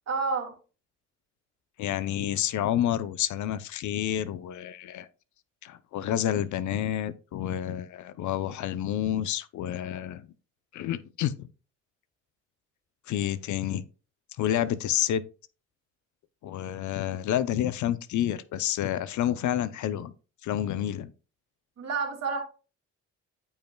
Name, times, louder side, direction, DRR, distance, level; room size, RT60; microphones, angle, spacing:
voice 1, 0.1-0.5 21.8-22.4, right 4 dB, 60° right, 2.5 m, -29 dB
voice 2, 1.8-5.1 5.6-10.3 10.7-11.3 13.1-13.8 14.4-15.2 16.4-20.1 20.4-21.1, left 11 dB, 75° left, 0.6 m, -29 dB
13.5 x 5.5 x 2.3 m
cardioid pair, 90°, 30 cm